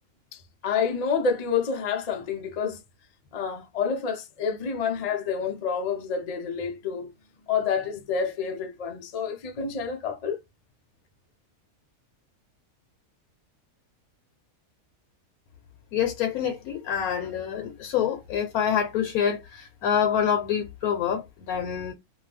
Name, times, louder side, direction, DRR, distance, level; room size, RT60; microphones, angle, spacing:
voice 1, 0.3-2.8 3.3-7.1 7.5-10.4, left 6 dB, 65° left, 0.3 m, -28 dB
voice 2, 15.9-21.9, left 8 dB, 80° left, 1.1 m, -26 dB
2.7 x 2.2 x 3.2 m
omnidirectional pair, 1.5 m